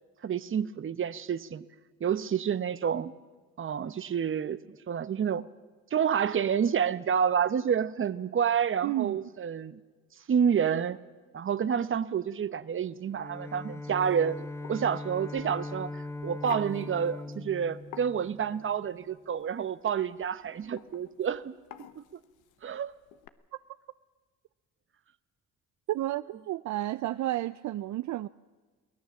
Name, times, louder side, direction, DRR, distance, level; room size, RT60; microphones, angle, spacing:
voice 1, 0.2-1.6 2.0-3.1 3.6-5.4 5.9-9.8 10.3-11.0 11.3-14.4 14.7-21.5 22.0-22.1 22.6-22.9, right 8 dB, 40° right, 15 dB, 1.0 m, -29 dB
voice 2, 8.8-9.2 25.9-28.3, right 15 dB, 70° right, 14 dB, 0.5 m, -31 dB
Bowed string instrument, 13.1-18.7, left 2 dB, 10° left, 1.1 m, -40 dB
sound 1, 14.0-23.3, left 10 dB, 85° left, 1.1 m, -48 dB
23.0 x 17.5 x 7.2 m, 1.4 s
cardioid pair, 90°, 30 cm